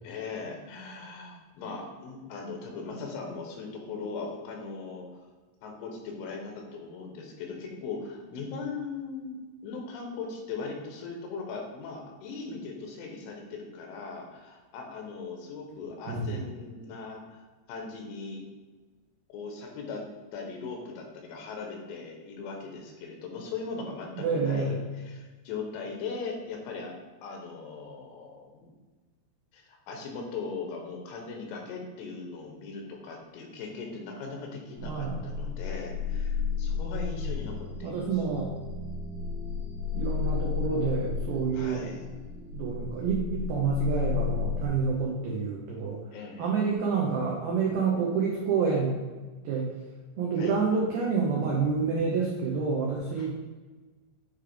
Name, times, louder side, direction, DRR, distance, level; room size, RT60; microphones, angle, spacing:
voice 1, 0.0-5.2 5.6-9.4 9.6-17.4 17.7-18.4 19.3-20.0 20.3-27.0 27.2-28.7 29.5-38.1 41.5-42.0 46.1-46.5 50.4-50.5 53.2-53.3, left 4 dB, 85° left, 1 dB, 3.3 m, -39 dB
voice 2, 16.1-16.4 24.2-24.8 34.8-35.2 37.8-38.5 39.9-41.8 42.5-46.0 46.4-48.9 49.4-49.7 50.2-53.3, right 5 dB, 90° right, -2 dB, 2.1 m, -28 dB
sound 1, 34.8-44.7, left 6 dB, 70° left, 2.9 m, -33 dB
9.2 x 3.4 x 3.4 m, 1.3 s
omnidirectional pair, 5.5 m